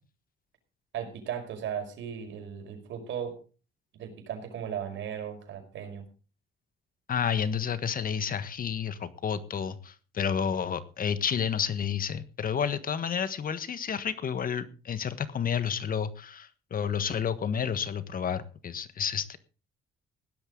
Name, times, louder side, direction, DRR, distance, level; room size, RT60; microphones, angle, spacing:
voice 1, 0.9-3.3 3.9-6.1, right 8 dB, 75° right, 5 dB, 5.3 m, -36 dB
voice 2, 7.1-19.4, left 7 dB, 45° left, 13 dB, 1.5 m, -30 dB
17.0 x 12.0 x 3.9 m, 0.36 s
cardioid pair, 105°, 20 cm